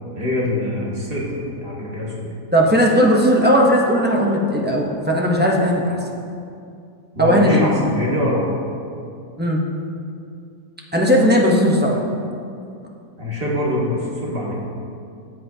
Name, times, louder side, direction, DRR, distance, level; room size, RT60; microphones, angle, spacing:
voice 1, 0.1-2.1 7.2-8.5 13.2-14.5, left 1 dB, 35° right, -5 dB, 1.8 m, -24 dB
voice 2, 2.5-6.0 7.2-7.8 9.4-9.6 10.9-12.0, equal, 10° right, -2 dB, 0.4 m, -17 dB
13.5 x 7.7 x 2.8 m, 2.4 s
omnidirectional pair, 1.7 m